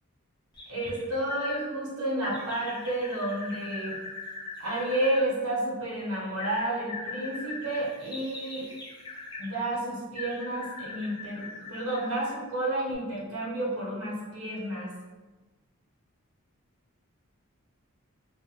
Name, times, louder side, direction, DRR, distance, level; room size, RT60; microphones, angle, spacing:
sound 1, 0.5-1.6 2.2-5.2 6.4-9.5 10.1-12.4 12.9-13.0, left 3 dB, 20° left, 0.4 m, -41 dB
voice 1, 0.7-4.0 4.6-8.7 9.4-14.9, right 1 dB, 85° right, -5 dB, 0.9 m, -31 dB
2.5 x 2.1 x 2.7 m, 1.2 s
head